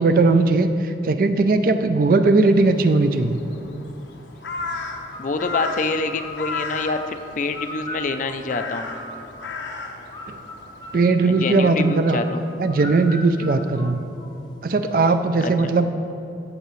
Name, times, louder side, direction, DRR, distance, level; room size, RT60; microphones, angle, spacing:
voice 1, 0.0-3.4 10.3-10.4 10.9-12.2 12.6-14.0 14.6-15.9, right 3 dB, 50° right, 9 dB, 0.4 m, -18 dB
Crow, 2.5-11.0, left 3 dB, 85° left, 0.8 m, -35 dB
sound 1, 4.7-9.5 10.1-14.6, left 1 dB, 25° left, 0.7 m, -39 dB
voice 2, 5.2-8.9 11.3-12.4 15.4-15.7, left 3 dB, 45° left, 8 dB, 0.4 m, -26 dB
15.0 x 6.5 x 3.1 m, 2.8 s
head